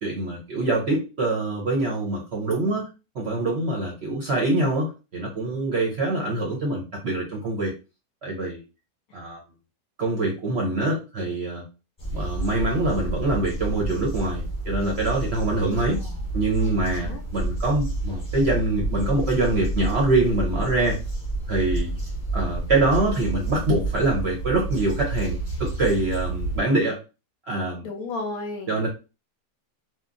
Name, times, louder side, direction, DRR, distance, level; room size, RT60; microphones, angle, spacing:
voice 1, 0.0-2.9 3.1-7.7 8.2-8.6 9.1-9.4 10.0-11.6 12.1-16.0 16.3-21.0 21.5-21.9 22.3-27.0 27.5-27.9 28.7-28.9, right 2 dB, 55° right, -2 dB, 0.7 m, -24 dB
sound 1, 12.0-26.6, right 2 dB, 20° left, 1.0 m, -29 dB
voice 2, 15.6-16.2 16.6-17.2 27.8-28.9, left 3 dB, 70° left, 3 dB, 0.9 m, -35 dB
2.9 x 2.2 x 2.5 m, 0.30 s
omnidirectional pair, 1.8 m